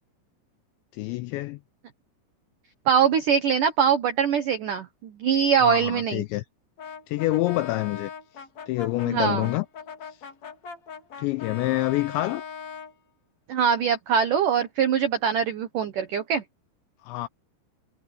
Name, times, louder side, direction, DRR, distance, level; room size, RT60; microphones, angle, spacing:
voice 1, 0.9-1.6 5.6-6.4 7.1-8.1 8.7-9.7 11.2-12.4 17.0-17.3, left 18 dB, 85° left, 2.6 m, -27 dB
voice 2, 2.9-6.2 9.1-9.5 13.5-16.4, right 7 dB, 85° right, 1.8 m, -23 dB
Brass instrument, 6.8-12.9, left 6 dB, 35° left, 4.2 m, -40 dB
omnidirectional pair, 5.8 m